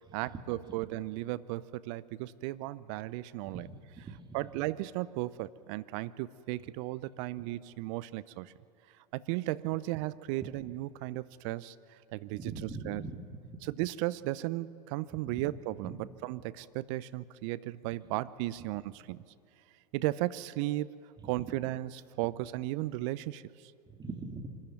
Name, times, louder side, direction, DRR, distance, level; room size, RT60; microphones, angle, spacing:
voice 1, 0.1-3.7 4.3-8.5 9.1-13.0 13.6-19.2 19.9-20.9 21.2-23.7, right 17 dB, 50° right, 17 dB, 0.6 m, -35 dB
voice 2, 3.4-4.2 10.4-10.5 12.3-13.2 15.3-15.4 15.8-15.9 21.2-21.3 23.9-24.6, right 3 dB, 20° right, 4 dB, 2.5 m, -42 dB
25.0 x 13.0 x 9.1 m, 2.5 s
hypercardioid pair, 90°, 21 cm